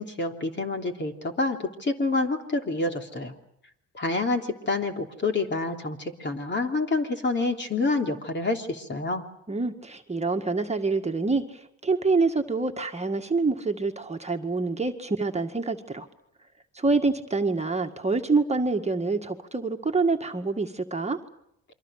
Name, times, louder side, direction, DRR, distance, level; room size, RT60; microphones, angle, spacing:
voice 1, 0.0-3.3 3.9-9.2, left 3 dB, 35° left, 4 dB, 3.3 m, -28 dB
voice 2, 9.5-16.1 16.7-21.2, right 3 dB, 20° right, 4 dB, 1.9 m, -26 dB
28.5 x 24.0 x 6.6 m, 0.74 s
cardioid pair, 90°, 30 cm